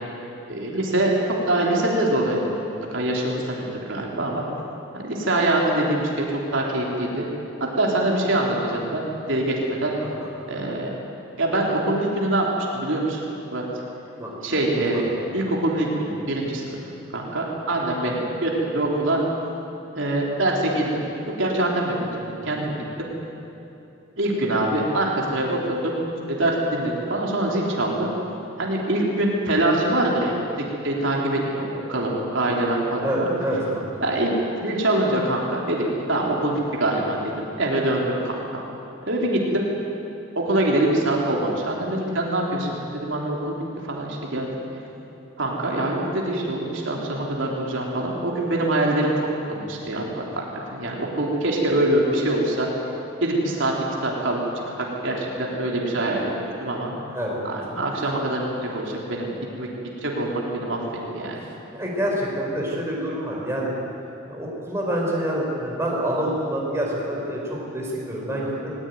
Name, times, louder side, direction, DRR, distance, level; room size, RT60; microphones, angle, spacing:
voice 1, 0.5-2.5 2.9-3.6 3.9-4.4 4.9-7.3 7.6-10.0 10.5-10.9 11.4-12.5 12.7-13.6 14.4-15.0 15.3-16.8 17.1-19.2 19.9-21.1 21.4-23.1 24.2-26.0 26.3-28.1 28.6-30.3 30.6-33.3 34.0-35.8 36.1-38.6 39.1-39.7 40.4-44.6 45.4-49.1 49.5-52.7 53.2-53.7 54.0-56.3 56.6-56.9 57.4-58.4 58.7-59.3 59.6-59.7 60.0-60.8 61.1-61.4, right 1 dB, 65° right, -2 dB, 3.6 m, -24 dB
voice 2, 33.0-33.8 57.1-57.7 61.7-63.7 64.3-68.8, right 1 dB, 15° right, -3 dB, 4.8 m, -27 dB
20.0 x 20.0 x 9.4 m, 2.9 s
head